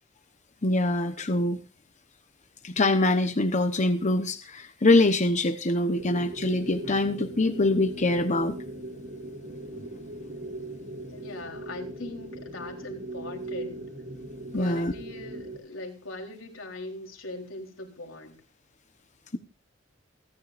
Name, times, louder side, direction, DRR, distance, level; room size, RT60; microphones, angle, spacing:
voice 1, 0.6-1.6 2.6-8.6 14.5-14.9, left 2 dB, 40° left, 7 dB, 1.0 m, -24 dB
sound 1, 5.9-15.6, right 1 dB, 80° right, 3.0 m, -39 dB
voice 2, 11.1-13.8 14.5-18.4, left 2 dB, 85° left, 1 dB, 3.9 m, -40 dB
29.0 x 10.5 x 2.6 m, 0.33 s
head